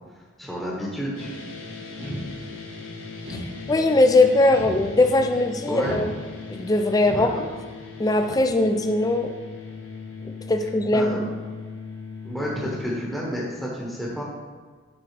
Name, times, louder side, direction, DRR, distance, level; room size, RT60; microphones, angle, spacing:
voice 1, 0.4-1.3 5.7-5.9 7.1-7.3 10.9-11.2 12.2-14.2, equal, ahead, -6 dB, 1.0 m, -30 dB
sound 1, 1.1-12.8, left 4 dB, 80° left, 1.1 m, -39 dB
sound 2, 2.0-2.8 3.2-4.0 4.5-5.3 5.8-6.6 7.1-7.7, equal, 55° right, 1.3 m, -36 dB
voice 2, 3.7-6.1 6.5-7.4 8.0-9.3 10.2-11.3, left 2 dB, 20° left, 6 dB, 0.4 m, -20 dB
9.7 x 3.7 x 3.4 m, 1.5 s
head